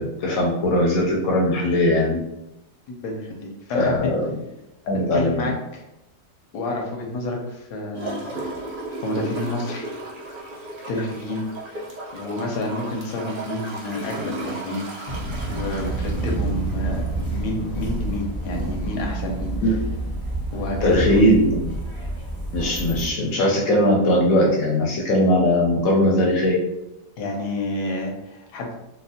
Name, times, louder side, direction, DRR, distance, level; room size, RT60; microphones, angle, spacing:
voice 1, 0.0-2.2 3.7-4.3 4.9-5.5 19.6-19.8 20.8-21.7 22.5-26.6, left 1 dB, 65° left, -2 dB, 0.9 m, -19 dB
voice 2, 3.0-4.1 5.1-5.8 6.5-8.5 9.0-9.9 10.9-11.8 12.1-14.9 15.5-19.5 20.5-21.0 27.2-28.8, left 2 dB, 85° left, 1 dB, 1.2 m, -29 dB
Gurgling / Toilet flush, 7.9-17.4 17.8-17.9, right 2 dB, 60° right, 0.5 m, -35 dB
sound 1, 15.1-23.1, right 2 dB, 40° left, 0.6 m, -28 dB
4.1 x 2.0 x 2.7 m, 0.89 s
omnidirectional pair, 1.8 m